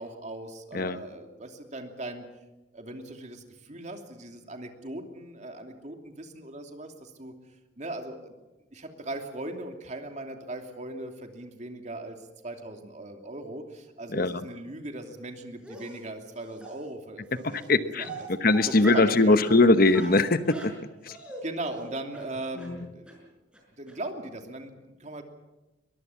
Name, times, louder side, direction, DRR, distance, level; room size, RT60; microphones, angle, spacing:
voice 1, 0.0-2.2 2.7-7.3 7.8-8.3 8.7-12.2 12.4-18.3 18.6-19.4 21.4-23.3 23.7-25.2, right 1 dB, 40° right, 4 dB, 2.8 m, -39 dB
Dog, 15.6-16.0 16.6-16.7 17.5-17.6 18.0-19.1 19.4-19.6 19.9-21.4 21.7-21.9 22.1-22.2 22.6-22.7 23.1-23.2 23.5-23.6 23.9-24.0, right 2 dB, 5° right, 6.1 m, -40 dB
voice 2, 17.5-18.1 18.4-20.7, left 2 dB, 50° left, 11 dB, 1.0 m, -21 dB
22.5 x 21.5 x 7.2 m, 1.0 s
head